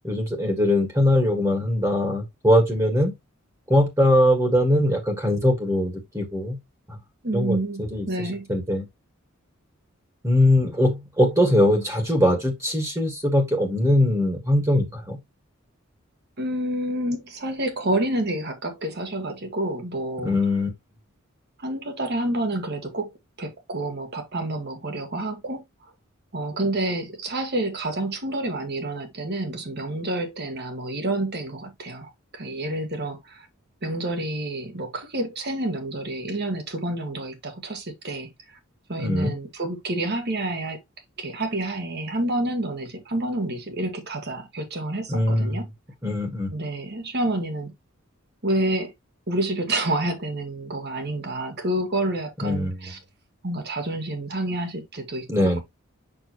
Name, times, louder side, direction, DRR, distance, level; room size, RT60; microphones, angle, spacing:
voice 1, 0.0-3.1 3.7-6.6 6.9-7.0 7.3-8.8 10.2-15.2 20.2-20.7 39.0-39.3 45.1-45.6 46.0-46.5 52.4-52.8 55.3-55.6, left 1 dB, 15° right, 1.7 m, -21 dB
voice 2, 7.2-8.5 16.4-20.3 21.6-23.1 23.4-25.6 26.3-33.5 33.8-38.6 38.9-40.8 41.2-45.7 46.5-47.7 48.4-48.9 49.3-53.0 53.4-55.6, right 1 dB, 50° right, 1.7 m, -28 dB
6.4 x 6.0 x 3.0 m
head